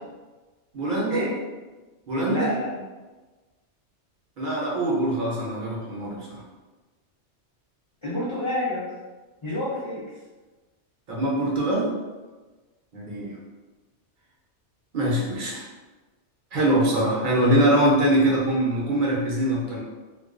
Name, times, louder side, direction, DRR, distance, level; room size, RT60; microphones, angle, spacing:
voice 1, 0.7-1.3 2.1-2.5 4.4-6.4 11.1-11.9 12.9-13.4 14.9-15.6 16.5-19.8, right 1 dB, 55° right, -5 dB, 0.7 m, -23 dB
voice 2, 2.3-2.7 8.0-8.9 9.4-10.0, left 1 dB, 35° left, -9 dB, 0.5 m, -28 dB
2.3 x 2.2 x 2.4 m, 1.2 s
omnidirectional pair, 1.2 m